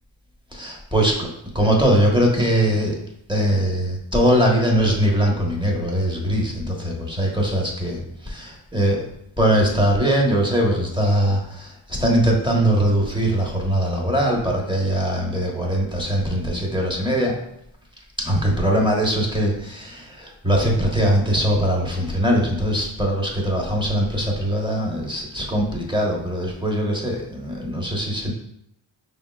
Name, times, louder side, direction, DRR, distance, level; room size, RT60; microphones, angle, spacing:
voice 1, 0.5-1.3 1.5-3.0 3.3-9.0 9.4-11.7 12.0-17.4 18.2-28.3, equal, 10° right, -1 dB, 1.1 m, -21 dB
5.1 x 3.5 x 2.4 m, 0.77 s
cardioid pair, 55°, 49 cm